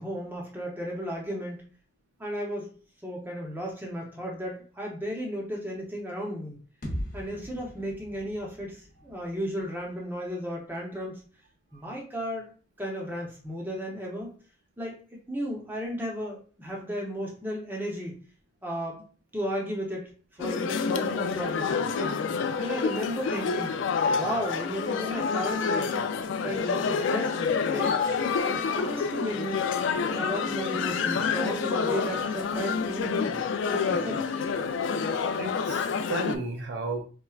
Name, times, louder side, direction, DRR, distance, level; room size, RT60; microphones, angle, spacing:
voice 1, 0.0-1.7 2.2-2.8 3.0-6.6 7.1-11.2 11.7-12.5 12.8-14.3 14.8-18.3 18.6-19.0 19.3-20.1 20.4-22.2 22.6-23.8 24.1-28.0 28.4-29.6 30.1-33.4 33.7-34.3, equal, 10° right, -2 dB, 0.7 m, -34 dB
sound 1, 6.8-10.7, equal, 45° left, 0.8 m, -41 dB
sound 2, 20.4-36.4, left 5 dB, 75° left, 0.3 m, -28 dB
voice 2, 35.4-37.0, right 3 dB, 60° right, 2 dB, 0.5 m, -33 dB
4.3 x 2.2 x 2.3 m, 0.40 s
head